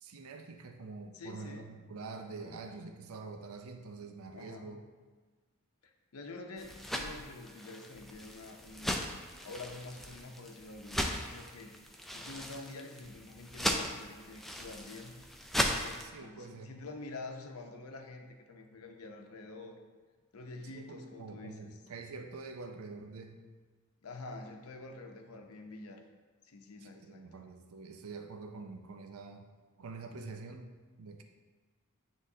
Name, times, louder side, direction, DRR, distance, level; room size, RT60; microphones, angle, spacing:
voice 1, 0.0-4.8 16.0-16.8 20.6-23.4 26.8-29.5 29.8-30.7 31.0-31.2, right 3 dB, 70° right, 5 dB, 0.5 m, -46 dB
voice 2, 1.1-1.7 2.4-2.5 4.3-4.7 6.1-8.9 9.4-11.7 12.1-15.2 15.7-19.8 20.3-21.8 24.0-26.0 26.4-27.4, left 3 dB, 75° left, 4 dB, 0.7 m, -47 dB
sound 1, 6.6-16.1, equal, ahead, 0.3 m, -38 dB
9.5 x 3.6 x 2.7 m, 1.4 s
head